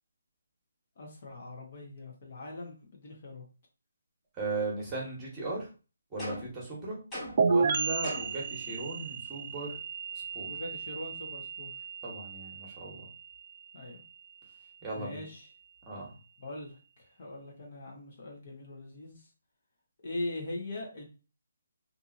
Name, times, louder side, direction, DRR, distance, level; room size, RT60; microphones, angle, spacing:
voice 1, 1.0-3.5 10.4-11.7 13.7-14.0 15.0-15.5 16.4-19.3 20.0-21.1, left 2 dB, 45° left, 0 dB, 0.9 m, -41 dB
voice 2, 4.4-5.6 6.1-7.0 7.4-9.7 10.3-10.5 12.0-13.0 14.8-15.2 15.9-16.1, right 3 dB, 15° right, -4 dB, 1.1 m, -37 dB
sound 1, 6.2-6.6 7.1-7.5 8.0-8.5, left 1 dB, 10° left, 1.2 m, -40 dB
sound 2, 7.4-14.9, right 4 dB, 45° right, 0.4 m, -33 dB
2.7 x 2.6 x 2.5 m, 0.33 s
hypercardioid pair, 160°, 0 cm